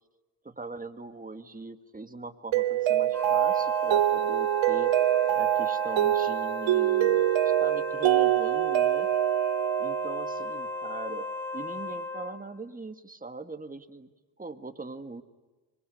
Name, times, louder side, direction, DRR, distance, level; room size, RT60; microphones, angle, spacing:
voice 1, 0.4-5.0 5.3-7.2 7.4-9.1 9.8-11.3 11.5-14.1 14.4-15.2, right 3 dB, 20° right, 8 dB, 2.0 m, -41 dB
Mallet percussion, 2.5-10.7, right 13 dB, 85° right, 0.8 m, -25 dB
Wind instrument woodwind instrument, 3.1-12.4, left 3 dB, 5° left, 6.9 m, -36 dB
25.5 x 23.0 x 9.6 m, 1.2 s
cardioid pair, 85°, 45 cm